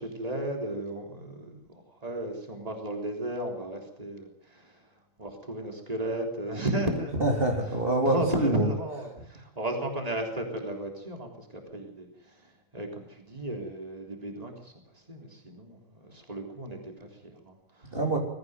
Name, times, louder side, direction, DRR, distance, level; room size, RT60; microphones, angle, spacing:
voice 1, 0.0-4.8 5.2-7.5 8.0-18.0, right 1 dB, 30° right, 2 dB, 3.8 m, -35 dB
voice 2, 7.2-8.7 17.9-18.2, right 2 dB, 45° right, 0 dB, 3.7 m, -25 dB
22.0 x 15.0 x 9.4 m, 0.74 s
omnidirectional pair, 1.4 m